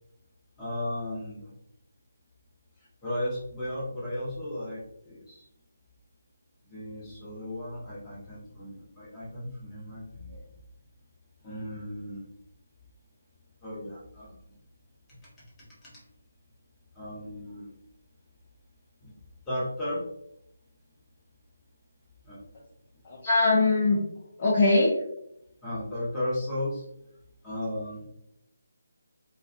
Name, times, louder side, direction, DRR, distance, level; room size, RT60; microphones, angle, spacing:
voice 1, 0.6-1.5 2.8-5.4 6.6-10.5 11.4-12.2 13.6-14.5 15.4-16.0 16.9-17.7 19.0-19.1 19.5-20.0 22.2-22.4 25.6-26.9 27.4-28.1, left 1 dB, 15° left, -9 dB, 1.0 m, -35 dB
voice 2, 23.0-24.0 24.4-25.0, left 2 dB, 30° left, -7 dB, 0.6 m, -22 dB
2.3 x 2.3 x 2.5 m, 0.78 s
figure-of-eight pair, 150°, 0 cm